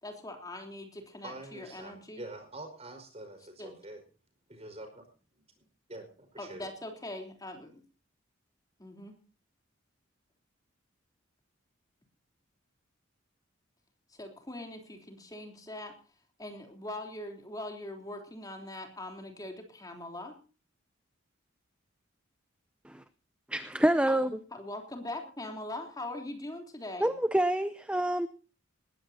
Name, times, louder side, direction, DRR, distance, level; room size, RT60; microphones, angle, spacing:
voice 1, 0.0-2.2 3.6-3.7 6.4-7.8 8.8-9.1 14.1-15.9 16.4-20.3 24.5-27.1, left 1 dB, 20° left, 3 dB, 3.4 m, -42 dB
voice 2, 1.2-4.0 4.5-5.0 5.3-5.4 5.9-6.7, right 2 dB, 30° right, 7 dB, 5.1 m, -45 dB
voice 3, 23.5-24.4 27.0-28.3, right 1 dB, 5° right, 12 dB, 0.6 m, -27 dB
20.5 x 15.0 x 2.8 m, 0.36 s
head